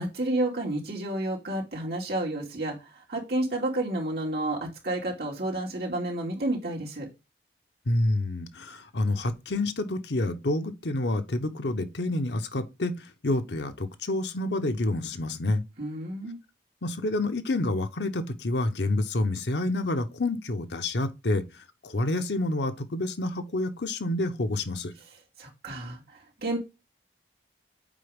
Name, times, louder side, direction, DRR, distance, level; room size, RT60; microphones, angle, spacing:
voice 1, 0.0-7.1 15.8-16.4 25.4-26.6, right 1 dB, 60° right, 2.5 m, -30 dB
voice 2, 7.9-15.6 16.8-24.9, left 2 dB, 80° left, 0.9 m, -28 dB
7.3 x 4.9 x 3.6 m
head